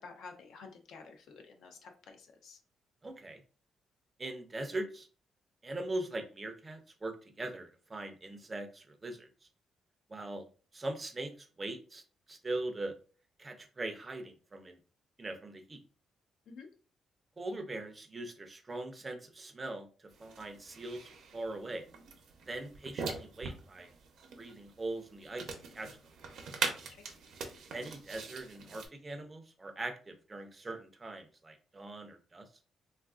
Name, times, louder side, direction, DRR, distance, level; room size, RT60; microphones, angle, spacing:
voice 1, 0.0-2.6 16.5-16.7 26.7-27.0, left 4 dB, 75° left, 4 dB, 0.5 m, -51 dB
voice 2, 3.0-3.4 4.2-5.1 5.6-9.3 10.1-10.5 10.7-12.0 12.3-12.9 13.4-14.8 15.2-15.8 17.4-21.8 22.4-23.9 24.4-26.0 27.7-32.5, right 2 dB, 20° right, 5 dB, 0.4 m, -41 dB
sound 1, 20.1-28.9, right 5 dB, 70° right, 0.6 m, -42 dB
3.3 x 2.3 x 2.3 m, 0.38 s
cardioid pair, 150°, 0 cm